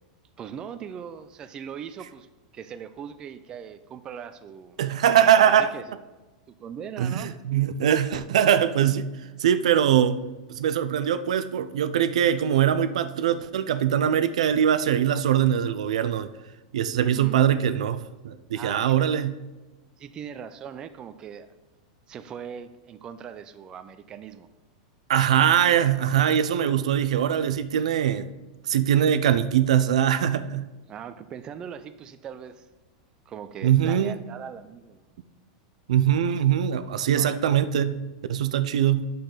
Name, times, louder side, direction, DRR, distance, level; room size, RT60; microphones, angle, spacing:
voice 1, 0.4-2.3 2.5-4.8 5.4-6.0 6.5-7.3 17.1-17.7 18.5-19.0 20.0-21.5 22.1-24.5 30.9-32.7 33.3-35.1 37.1-37.3, right 8 dB, 25° right, 0.5 m, -40 dB
voice 2, 4.8-5.7 7.0-9.1 9.4-10.2 10.5-16.3 16.7-19.4 25.1-28.3 28.7-30.7 33.6-34.1 35.9-38.0 38.3-39.1, right 9 dB, 85° right, 0.6 m, -22 dB
8.9 x 6.7 x 3.9 m
supercardioid pair, 150°, 3 cm